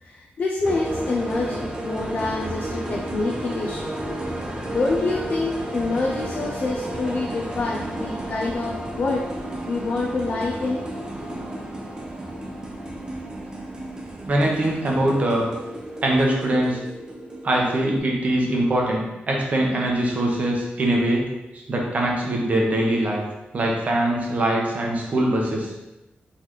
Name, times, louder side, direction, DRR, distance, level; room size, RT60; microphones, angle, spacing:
voice 1, 0.0-3.9 4.5-9.3 9.7-10.8, left 3 dB, 45° left, -2 dB, 0.5 m, -26 dB
sound 1, 0.6-18.0, right 1 dB, 20° right, 0.6 m, -32 dB
voice 2, 14.3-15.5 16.0-16.8 17.4-21.2 21.5-23.2 23.5-25.7, right 1 dB, 40° right, -1 dB, 0.9 m, -22 dB
4.0 x 3.9 x 3.1 m, 0.97 s
wide cardioid pair, 175°, 4 cm